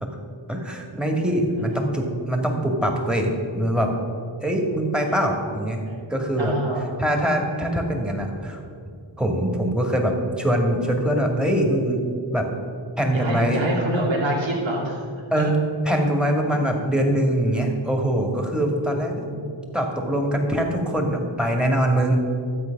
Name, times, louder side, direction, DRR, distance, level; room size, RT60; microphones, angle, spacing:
voice 1, 0.5-3.9 4.4-6.5 7.0-8.6 9.2-12.0 12.3-12.5 13.0-13.7 15.3-15.6 15.8-19.3 19.7-22.2, right 1 dB, ahead, 1 dB, 2.2 m, -23 dB
voice 2, 6.4-6.8 13.1-15.0 15.3-15.4 19.1-19.6, right 1 dB, 80° right, -3 dB, 2.6 m, -26 dB
12.5 x 8.0 x 6.0 m, 2.4 s
cardioid pair, 45°, 46 cm